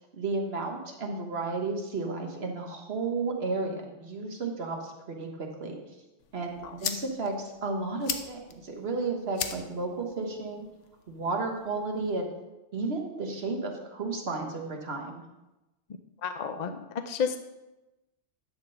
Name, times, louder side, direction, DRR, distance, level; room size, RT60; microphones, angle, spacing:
voice 1, 0.1-5.8 6.3-10.7 11.1-12.3 12.7-15.2, right 3 dB, 60° right, 2 dB, 1.4 m, -33 dB
sound 1, 6.2-12.2, left 7 dB, 90° left, 1.1 m, -40 dB
voice 2, 16.2-17.4, left 6 dB, 50° left, 8 dB, 0.5 m, -31 dB
11.0 x 3.7 x 6.8 m, 1.0 s
omnidirectional pair, 1.2 m